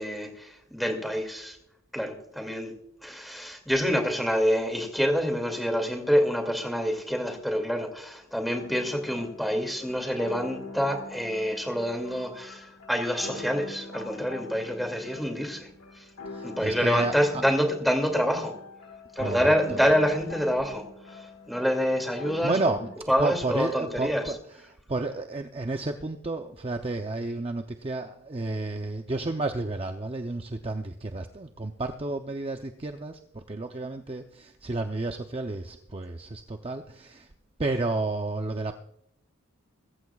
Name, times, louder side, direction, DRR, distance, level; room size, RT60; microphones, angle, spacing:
voice 1, 0.0-1.6 1.9-2.7 3.0-15.7 16.4-18.5 19.2-21.2 21.5-22.6 23.1-24.2, equal, ahead, 2.4 m, -27 dB
sound 1, 8.6-23.0, left 3 dB, 75° left, 1.8 m, -44 dB
voice 2, 16.2-17.4 19.2-19.8 22.4-22.9 23.2-37.3 37.6-38.8, right 2 dB, 25° right, 0.6 m, -31 dB
22.5 x 14.5 x 2.4 m
head